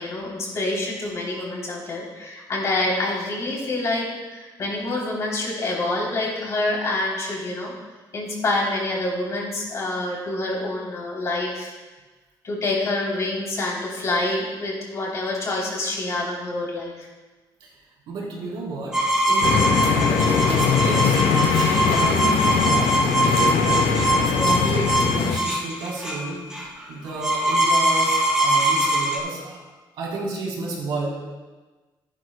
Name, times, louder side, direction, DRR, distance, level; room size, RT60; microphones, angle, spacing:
voice 1, 0.0-7.7 8.1-11.7 12.4-17.1, left 2 dB, 40° left, -3 dB, 3.2 m, -27 dB
voice 2, 18.1-21.2 21.5-29.5 29.9-31.1, right 2 dB, 85° right, -4 dB, 3.6 m, -31 dB
sound 1, 18.9-29.2, right 1 dB, 10° right, 2.3 m, -22 dB
sound 2, 19.4-25.4, left 7 dB, 75° left, 0.8 m, -21 dB
14.5 x 12.0 x 2.2 m, 1.3 s
cardioid pair, 155°, 8 cm